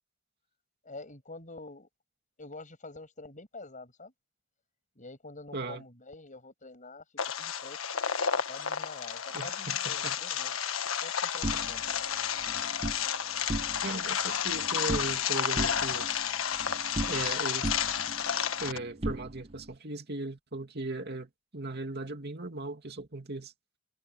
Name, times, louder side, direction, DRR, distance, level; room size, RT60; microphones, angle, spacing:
voice 1, 0.8-1.9 2.4-4.1 5.0-7.0 7.4-7.8 8.5-10.6 11.0-11.9, left 2 dB, 40° left, 7.8 m, -47 dB
voice 2, 5.5-5.8 9.3-10.2 13.8-16.1 17.1-17.7 18.6-23.5, right 2 dB, 50° right, 2.6 m, -37 dB
sound 1, 7.2-18.8, left 8 dB, 85° left, 1.4 m, -31 dB
sound 2, 11.4-13.0 13.4-14.1 14.3-15.2 15.6-17.4 17.6-19.7, right 1 dB, 30° right, 1.2 m, -37 dB
head